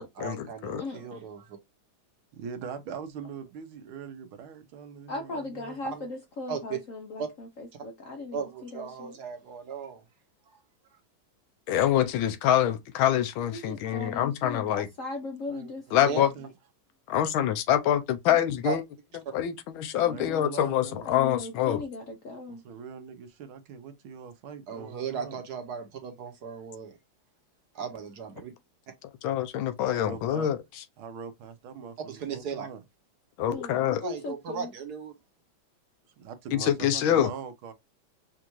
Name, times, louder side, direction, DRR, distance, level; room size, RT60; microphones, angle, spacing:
voice 1, 0.2-1.6 6.5-6.8 7.2-7.3 8.3-10.0 16.0-16.2 18.6-18.8 24.7-27.0 27.7-28.5 32.1-32.7 34.0-35.1, right 6 dB, 60° right, 1.3 m, -36 dB
voice 2, 0.8-1.2 5.1-9.2 13.5-16.2 18.3-18.4 19.9-20.5 21.0-22.6 33.5-34.7, left 3 dB, 60° left, 0.8 m, -38 dB
voice 3, 2.3-6.1 15.5-16.5 20.1-21.1 22.5-25.4 29.9-30.5 31.0-32.8 36.2-37.7, right 6 dB, 85° right, 1.7 m, -42 dB
voice 4, 11.7-14.9 15.9-16.3 17.1-18.8 19.3-21.8 29.2-30.8 33.4-34.0 36.5-37.3, left 11 dB, 80° left, 1.5 m, -25 dB
5.6 x 2.5 x 3.0 m
omnidirectional pair, 2.2 m